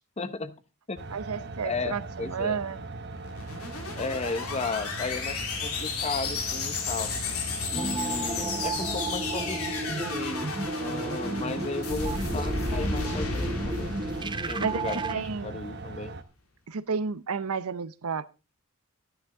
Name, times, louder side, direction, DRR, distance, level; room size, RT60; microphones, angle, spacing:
voice 1, 0.2-0.5 0.9-1.0 1.6-2.6 3.9-7.1 7.7-13.9 14.5-16.1, left 3 dB, 30° left, 0.8 m, -35 dB
sound 1, 1.0-16.2, right 3 dB, 50° right, 1.0 m, -40 dB
voice 2, 1.1-2.8 14.6-15.5 16.7-18.3, right 5 dB, 80° right, 0.7 m, -31 dB
sound 2, 3.1-15.5, left 4 dB, 85° left, 2.4 m, -33 dB
sound 3, 7.7-15.1, right 3 dB, 20° right, 0.6 m, -33 dB
12.0 x 10.0 x 3.7 m
head